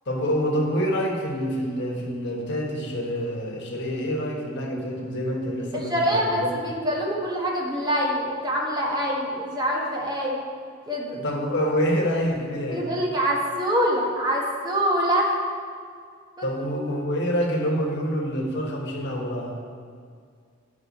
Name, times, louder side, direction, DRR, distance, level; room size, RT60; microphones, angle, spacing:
voice 1, 0.1-6.5 11.1-12.9 16.4-19.5, equal, 60° left, -1 dB, 1.4 m, -27 dB
voice 2, 5.7-10.4 10.9-11.2 12.7-15.3, equal, 20° right, -2 dB, 1.1 m, -25 dB
10.0 x 5.4 x 4.1 m, 2.1 s
head